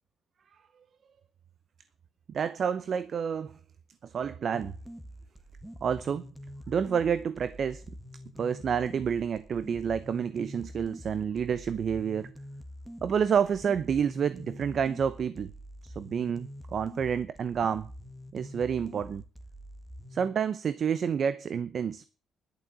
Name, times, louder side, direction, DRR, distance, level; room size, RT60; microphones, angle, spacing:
voice 1, 2.3-3.5 4.0-4.7 5.8-6.3 6.7-7.8 8.4-12.3 13.0-15.5 15.8-17.9 18.3-19.2 20.1-22.0, right 7 dB, 55° right, 0.8 m, -29 dB
sound 1, 4.5-20.3, equal, 5° right, 2.0 m, -46 dB
11.5 x 7.4 x 8.0 m
cardioid pair, 90°, 0 cm